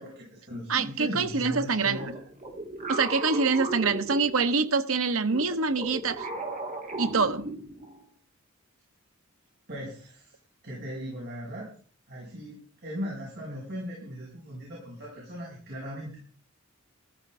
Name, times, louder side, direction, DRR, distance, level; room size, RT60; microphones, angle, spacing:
voice 1, 0.0-2.2 9.7-10.4 10.6-11.7 12.1-16.2, equal, 55° right, 6.6 m, -38 dB
voice 2, 0.7-2.0 2.9-6.3 7.0-7.5, right 4 dB, 85° right, 1.1 m, -25 dB
sound 1, 1.9-4.7 5.3-8.0, right 2 dB, 35° right, 3.2 m, -36 dB
14.5 x 13.5 x 4.9 m
head